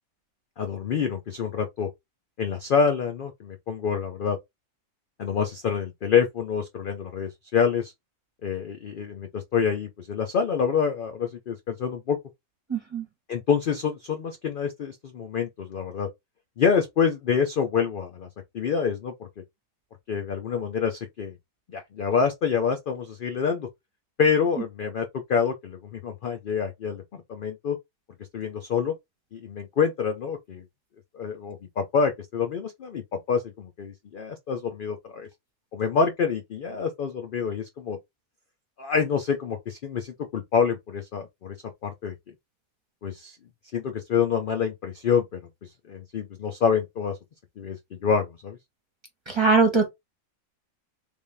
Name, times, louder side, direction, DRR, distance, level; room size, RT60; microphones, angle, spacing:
voice 1, 0.6-1.9 2.4-4.4 5.2-7.9 8.4-12.2 13.3-16.1 16.6-18.3 18.5-19.3 20.1-21.4 21.7-23.7 24.2-27.8 28.3-28.9 29.3-30.6 31.1-35.3 35.7-38.0 38.8-41.5 41.8-42.1 43.0-43.4 43.7-47.2 47.6-48.6, left 6 dB, 60° left, 0.5 m, -27 dB
voice 2, 12.7-13.0 49.3-49.9, right 4 dB, 20° right, 1.0 m, -21 dB
3.4 x 2.6 x 3.3 m
omnidirectional pair, 1.5 m